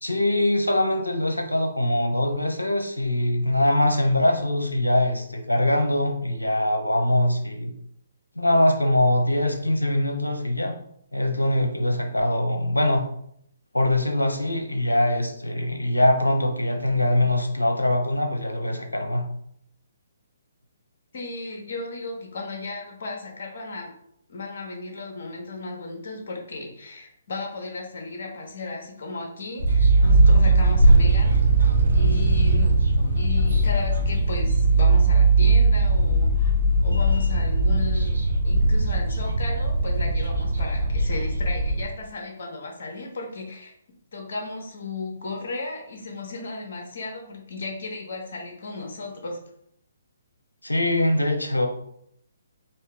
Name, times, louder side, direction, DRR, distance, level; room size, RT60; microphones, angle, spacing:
voice 1, 0.0-7.7 8.3-10.7 11.1-13.0 13.7-19.2 50.6-51.7, left 1 dB, 90° left, 4 dB, 0.8 m, -22 dB
voice 2, 21.1-23.9 24.3-32.8 33.2-36.6 36.8-38.1 38.4-43.7 44.1-49.4, left 3 dB, 55° left, 1 dB, 1.4 m, -35 dB
sound 1, 29.6-41.8, right 2 dB, 80° right, 1.1 m, -19 dB
4.3 x 2.9 x 3.5 m, 0.70 s
figure-of-eight pair, 135°, 0 cm